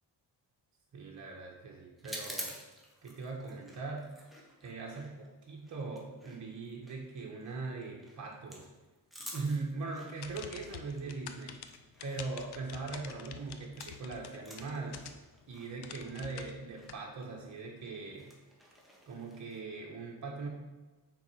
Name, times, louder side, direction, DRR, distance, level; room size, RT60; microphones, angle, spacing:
voice 1, 0.9-2.6 3.0-4.1 4.6-8.7 9.3-11.6 12.0-15.0 15.5-18.3 19.1-20.5, right 3 dB, 40° right, -2 dB, 1.4 m, -40 dB
sound 1, 2.0-14.1 14.3-19.6, equal, ahead, 1.3 m, -50 dB
sound 2, 10.1-15.4 15.8-16.9, left 8 dB, 65° left, 0.6 m, -47 dB
5.7 x 3.9 x 4.8 m, 1.2 s
cardioid pair, 80°, 43 cm